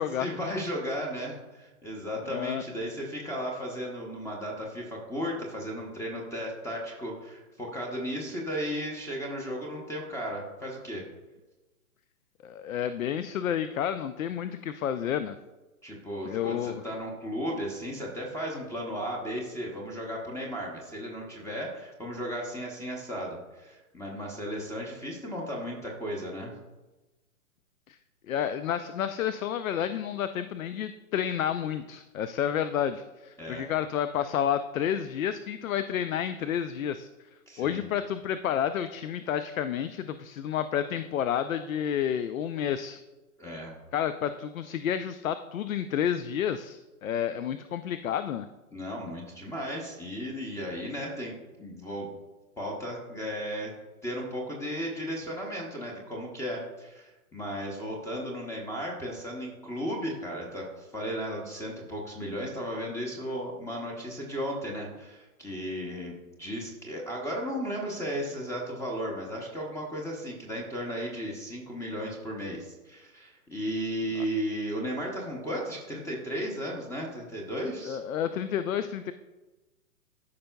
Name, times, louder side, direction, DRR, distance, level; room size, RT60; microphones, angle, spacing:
voice 1, 0.2-11.0 15.8-26.5 33.4-33.7 37.5-37.9 43.4-43.7 48.7-52.1 52.6-53.7 54.0-78.0, equal, 5° left, -1 dB, 0.7 m, -35 dB
voice 2, 2.2-2.6 12.4-15.4 16.2-16.8 27.9-28.0 28.3-37.1 37.6-43.0 43.9-48.5 77.8-79.1, left 9 dB, 65° left, 12 dB, 0.5 m, -30 dB
13.5 x 5.4 x 2.3 m, 1.1 s
hypercardioid pair, 130°, 44 cm